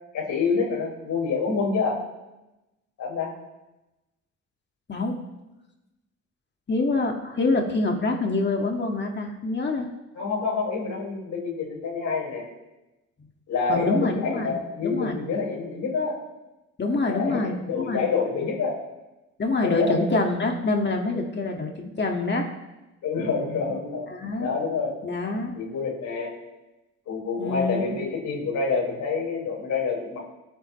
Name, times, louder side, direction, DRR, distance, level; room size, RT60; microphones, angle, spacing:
voice 1, 0.1-2.0 3.0-3.3 10.2-12.4 13.5-16.2 17.1-18.8 19.6-20.2 23.0-24.1 24.4-25.0 25.5-26.3 27.1-30.2, left 4 dB, 70° left, -3 dB, 5.3 m, -27 dB
voice 2, 6.7-9.9 13.7-14.5 14.8-15.2 16.8-18.0 19.4-22.5 24.1-24.5 25.0-25.5 27.4-28.0, left 2 dB, 35° left, 2 dB, 2.0 m, -26 dB
27.0 x 9.0 x 3.2 m, 1.0 s
cardioid pair, 90°, 30 cm